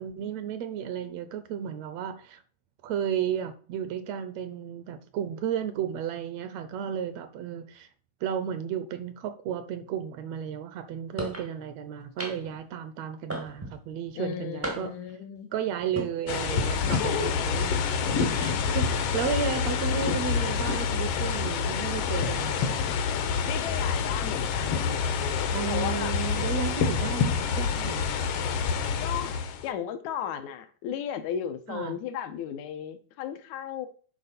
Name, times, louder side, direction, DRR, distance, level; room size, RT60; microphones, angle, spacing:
voice 1, 0.0-2.4 2.8-7.9 8.2-14.9 15.5-22.9 25.5-28.3 31.7-32.0, right 8 dB, 75° right, 1.7 m, -33 dB
sound 1, 11.2-11.5 12.2-12.6 13.3-13.8 14.6-15.1 15.8-16.1, right 1 dB, 25° right, 0.3 m, -34 dB
voice 2, 14.2-15.5 16.9-17.4 23.4-26.1 29.0-29.4 29.6-33.9, left 8 dB, 85° left, 2.2 m, -35 dB
sound 2, 16.3-29.7, left 6 dB, 70° left, 1.6 m, -27 dB
11.0 x 4.2 x 4.1 m
omnidirectional pair, 3.3 m